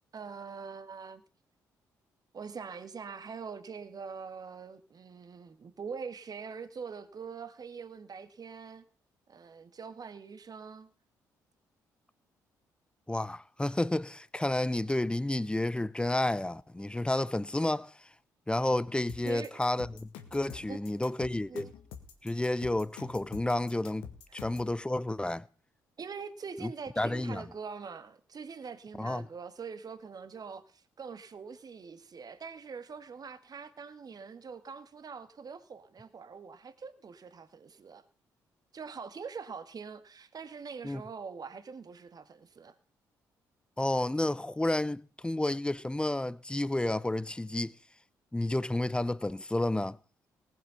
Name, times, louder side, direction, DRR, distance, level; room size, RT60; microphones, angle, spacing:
voice 1, 0.1-1.2 2.3-8.8 9.3-10.9 19.2-19.6 20.7-21.2 21.5-21.7 24.3-24.4 26.0-38.0 38.7-42.7, right 5 dB, 45° right, 1.7 m, -44 dB
voice 2, 13.1-17.9 18.5-21.7 22.2-25.5 26.6-26.7 27.0-27.4 29.0-29.2 40.8-41.0 43.8-47.7 48.3-50.0, left 1 dB, 10° left, 0.8 m, -31 dB
sound 1, 19.1-24.7, left 8 dB, 80° left, 1.7 m, -47 dB
18.5 x 7.7 x 5.6 m
hypercardioid pair, 45°, 9 cm